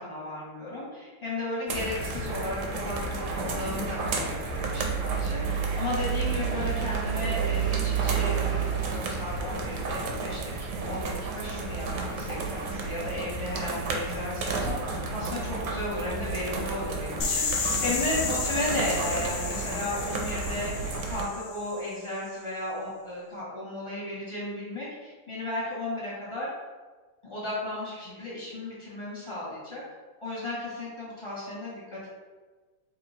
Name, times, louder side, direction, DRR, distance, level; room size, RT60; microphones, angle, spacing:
voice 1, 0.0-26.5 27.2-29.8 30.2-32.1, left 1 dB, 15° left, -8 dB, 1.2 m, -34 dB
sound 1, 1.7-21.2, right 5 dB, 70° right, 1.0 m, -31 dB
sound 2, 17.2-22.0, left 5 dB, 75° left, 0.7 m, -32 dB
3.2 x 2.9 x 4.1 m, 1.3 s
omnidirectional pair, 2.1 m